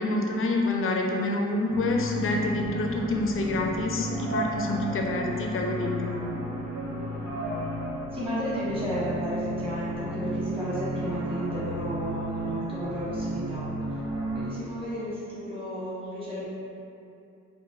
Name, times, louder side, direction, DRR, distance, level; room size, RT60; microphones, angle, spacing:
voice 1, 0.0-6.2, left 2 dB, 45° left, 1 dB, 0.6 m, -27 dB
sound 1, 1.7-14.4, equal, 85° right, 1.5 m, -33 dB
voice 2, 6.8-7.3 8.1-13.6 14.3-16.4, equal, 20° right, -10 dB, 1.4 m, -33 dB
4.1 x 2.2 x 3.7 m, 2.6 s
cardioid pair, 90°, 30 cm